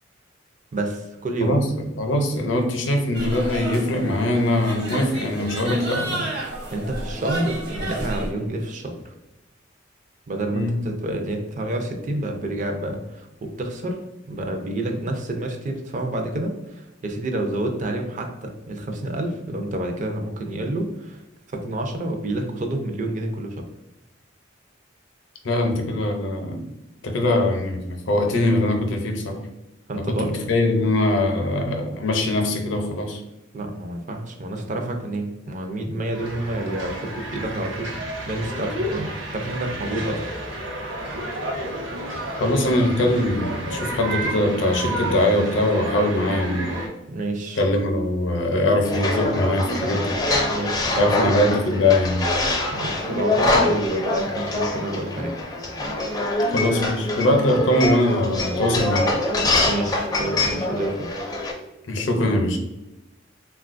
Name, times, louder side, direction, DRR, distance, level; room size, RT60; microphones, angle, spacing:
voice 1, 0.7-1.6 6.7-9.1 10.3-14.0 14.3-21.2 21.5-23.6 29.9-30.4 33.5-40.3 47.1-47.6 50.5-51.3 52.7-55.4 59.6-61.1, right 1 dB, 40° right, 3 dB, 0.4 m, -28 dB
voice 2, 1.4-6.3 10.5-10.8 25.4-26.6 27.0-29.4 30.0-33.2 42.4-46.7 47.6-50.2 51.0-52.2 56.5-59.1 61.9-62.6, left 1 dB, 70° left, 3 dB, 0.6 m, -22 dB
sound 1, 3.1-8.3, right 1 dB, 60° right, 1.0 m, -31 dB
sound 2, 36.1-46.9, right 1 dB, 90° right, 0.9 m, -31 dB
sound 3, 48.8-61.5, left 2 dB, 20° left, 0.4 m, -24 dB
3.7 x 2.3 x 2.5 m, 0.95 s
head